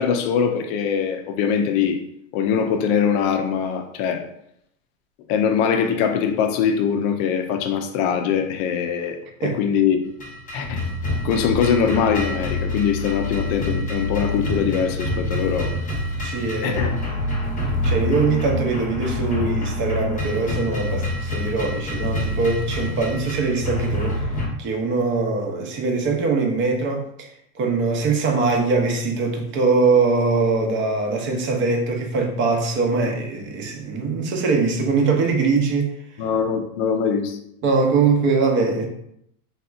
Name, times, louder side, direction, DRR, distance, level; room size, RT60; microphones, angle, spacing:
voice 1, 0.0-2.0 2.3-4.2 5.3-10.0 10.5-10.8 11.2-15.7 16.6-17.0 36.2-37.4, left 7 dB, 50° left, 7 dB, 0.5 m, -22 dB
sound 1, 10.2-24.5, left 1 dB, 20° left, 0.8 m, -26 dB
voice 2, 16.2-16.8 17.8-24.2 24.6-35.9 37.6-38.8, right 4 dB, 30° right, 2 dB, 0.6 m, -22 dB
3.3 x 2.8 x 2.4 m, 0.75 s
supercardioid pair, 120°, 41 cm